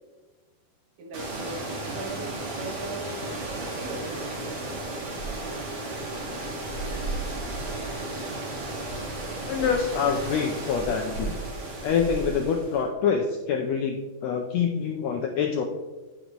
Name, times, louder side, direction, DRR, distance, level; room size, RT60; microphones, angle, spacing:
voice 1, 1.0-3.1 3.7-4.5, right 3 dB, 80° right, 1 dB, 3.2 m, -39 dB
sound 1, 1.1-12.8, right 2 dB, 40° right, 1.7 m, -34 dB
voice 2, 9.4-11.3 11.8-15.6, left 6 dB, 80° left, 2 dB, 1.5 m, -26 dB
14.5 x 5.9 x 3.0 m, 1.3 s
omnidirectional pair, 3.8 m